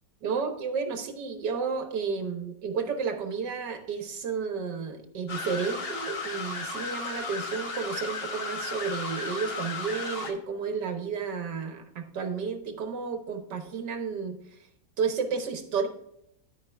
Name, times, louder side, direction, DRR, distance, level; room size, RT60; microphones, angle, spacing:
voice 1, 0.2-14.4 15.0-15.9, right 5 dB, 80° right, 5 dB, 1.9 m, -32 dB
sound 1, 5.3-10.3, left 4 dB, 40° left, 1.2 m, -35 dB
12.5 x 5.3 x 3.5 m, 0.77 s
omnidirectional pair, 1.8 m